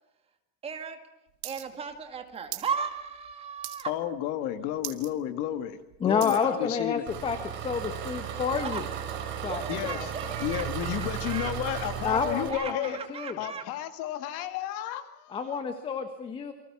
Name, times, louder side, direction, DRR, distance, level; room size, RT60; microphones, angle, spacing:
voice 1, 0.6-1.0 1.4-3.9 8.6-8.8 9.1-10.7 10.9-11.5 12.5-13.6, right 6 dB, 20° right, 6 dB, 2.1 m, -36 dB
sound 1, 1.4-1.6 1.9-2.7 3.1-3.3 3.6-4.1 4.4-4.5 4.8-5.1 5.5-6.5 7.1-7.2, right 18 dB, 75° right, 2.2 m, -39 dB
voice 2, 3.9-7.0 9.7-10.1 10.4-13.0 13.4-15.6, left 11 dB, 50° left, 9 dB, 2.1 m, -32 dB
voice 3, 6.0-8.8 9.4-10.1 12.0-13.4 15.3-16.5, left 6 dB, 15° left, 8 dB, 1.3 m, -29 dB
Engine, 7.1-12.5, right 8 dB, 40° right, 5.1 m, -35 dB
29.0 x 24.5 x 6.1 m, 0.88 s
cardioid pair, 175°, 30 cm